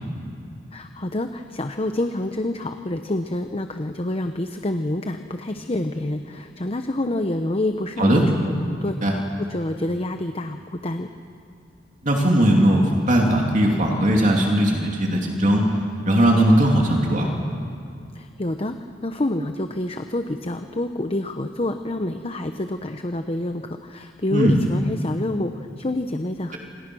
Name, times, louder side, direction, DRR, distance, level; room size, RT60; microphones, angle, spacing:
voice 1, 0.7-11.1 18.1-18.8 19.0-26.6, left 1 dB, 30° left, 7 dB, 0.9 m, -27 dB
voice 2, 12.0-15.7 16.1-17.3 24.3-24.6, right 1 dB, 45° right, 0 dB, 2.9 m, -18 dB
28.0 x 27.0 x 6.3 m, 2.5 s
head